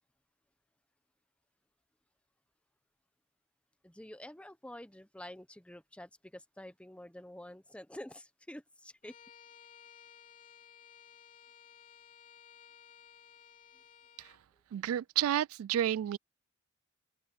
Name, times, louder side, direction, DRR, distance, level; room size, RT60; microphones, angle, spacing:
voice 1, 3.8-9.1, left 1 dB, 5° left, 1.0 m, -48 dB
Bowed string instrument, 9.0-14.4, left 8 dB, 40° left, 5.1 m, -57 dB
voice 2, 14.7-16.2, right 11 dB, 85° right, 0.3 m, -31 dB
open air
head